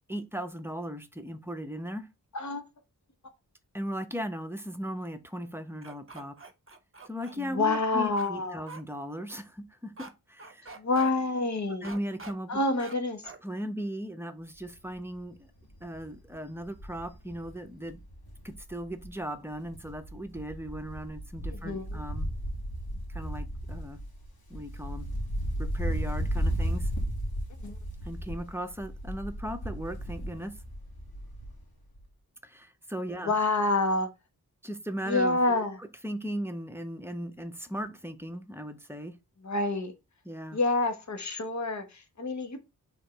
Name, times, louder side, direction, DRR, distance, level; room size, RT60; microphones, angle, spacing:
voice 1, 0.1-2.1 3.7-6.4 7.1-10.8 11.8-12.6 13.4-15.5 15.8-18.0 18.4-22.3 23.1-24.0 24.5-25.1 25.6-26.9 28.0-30.6 32.4-33.3 34.6-35.6 36.0-39.2 40.2-40.6, equal, 5° right, 0.8 m, -37 dB
sound 1, 5.8-7.4 8.2-8.3 8.7-8.8 10.0-10.1 10.4-11.1 11.8-12.3 12.8-13.0 13.2-13.4, right 4 dB, 35° right, 0.8 m, -45 dB
voice 2, 7.4-8.6 10.8-11.9 12.5-13.3 21.6-22.0 27.6-27.8 33.2-34.1 35.1-35.8 39.4-39.9 40.5-42.6, left 2 dB, 50° left, 1.2 m, -28 dB
Wind, 14.6-14.9 15.3-15.4 15.7-19.2 19.5-31.7 32.0-32.1, equal, 80° left, 2.2 m, -35 dB
5.1 x 3.7 x 5.1 m
wide cardioid pair, 85°, 36 cm